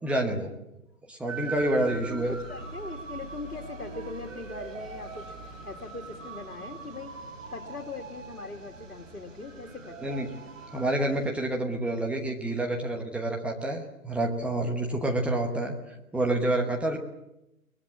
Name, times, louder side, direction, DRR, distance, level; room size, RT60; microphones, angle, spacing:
voice 1, 0.0-0.5 1.1-2.4 10.0-10.3 10.7-15.8 16.1-17.0, right 1 dB, 5° right, 0 dB, 1.0 m, -28 dB
sound 1, 1.3-11.3, right 3 dB, 60° right, 7.6 m, -42 dB
voice 2, 1.7-5.3 5.6-7.1 7.5-10.2 14.9-15.0, left 3 dB, 85° left, 2 dB, 2.6 m, -41 dB
23.0 x 20.0 x 8.5 m, 0.88 s
figure-of-eight pair, 140°, 44 cm